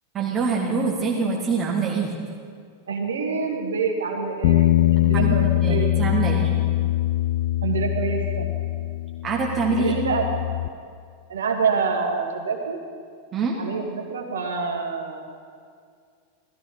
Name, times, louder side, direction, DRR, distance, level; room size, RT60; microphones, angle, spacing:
voice 1, 0.1-2.1 5.1-6.7 9.2-10.0 13.3-13.6, right 4 dB, 25° right, -2 dB, 1.7 m, -25 dB
voice 2, 2.9-5.9 7.6-8.5 9.8-10.3 11.3-12.8 13.6-15.2, right 5 dB, 65° right, 3 dB, 1.9 m, -26 dB
Bass guitar, 4.4-10.7, left 15 dB, 50° left, 0.4 m, -22 dB
16.0 x 13.5 x 5.3 m, 2.2 s
figure-of-eight pair, 90°, 0 cm